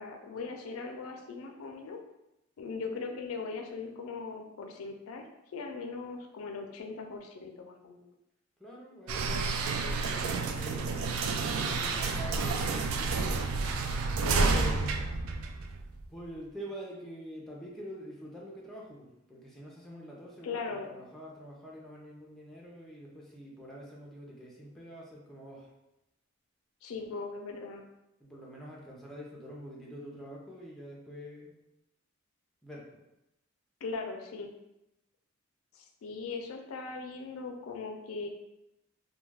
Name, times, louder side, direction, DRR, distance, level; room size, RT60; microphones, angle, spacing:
voice 1, 0.0-2.0 2.6-5.2 5.5-8.1 14.2-14.6 20.4-20.9 26.8-27.8 33.8-34.5 35.7-38.3, left 4 dB, 85° left, 3 dB, 0.4 m, -39 dB
voice 2, 8.6-10.9 11.5-13.3 14.3-15.0 16.1-25.7 28.2-31.5 32.6-33.0, equal, ahead, -4 dB, 0.5 m, -46 dB
sound 1, 9.1-16.0, right 4 dB, 85° right, 0.3 m, -30 dB
2.3 x 2.2 x 3.3 m, 0.90 s
head